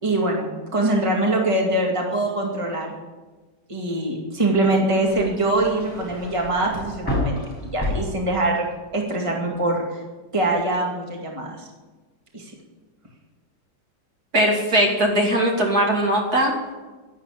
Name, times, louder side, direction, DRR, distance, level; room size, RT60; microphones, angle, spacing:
voice 1, 0.0-0.5 0.7-2.9 3.7-8.7 8.9-10.0 10.3-11.7 12.3-12.5, right 2 dB, 20° right, -1 dB, 2.3 m, -23 dB
sound 1, 4.5-8.8 9.1-9.7, left 1 dB, 5° left, 5.9 m, -31 dB
voice 2, 14.3-16.5, right 1 dB, 60° right, 0 dB, 3.2 m, -20 dB
11.5 x 11.5 x 8.4 m, 1.2 s
omnidirectional pair, 1.8 m